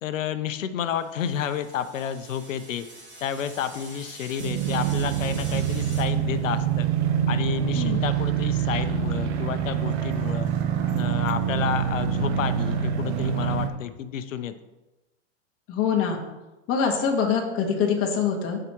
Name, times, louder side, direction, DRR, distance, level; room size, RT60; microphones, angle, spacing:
voice 1, 0.0-2.9 3.2-6.9 7.3-10.5 10.9-14.5, left 9 dB, 85° left, 11 dB, 0.8 m, -30 dB
sound 1, 0.9-6.0, right 2 dB, 20° right, 3.0 m, -45 dB
sound 2, 4.4-13.7, right 9 dB, 55° right, 1.2 m, -25 dB
voice 2, 7.7-8.1 15.7-16.2 16.7-18.6, left 6 dB, 35° left, 1 dB, 1.7 m, -24 dB
14.5 x 4.9 x 3.0 m, 1.1 s
hypercardioid pair, 125°, 38 cm